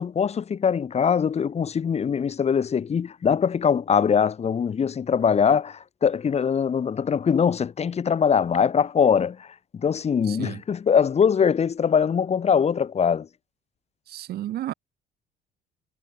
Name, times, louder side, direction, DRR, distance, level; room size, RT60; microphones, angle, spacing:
voice 1, 0.0-13.3, left 7 dB, 40° left, 5.6 m, -22 dB
voice 2, 10.2-10.6 14.1-14.7, right 13 dB, 70° right, 6.1 m, -32 dB
cardioid pair, 110°, 17 cm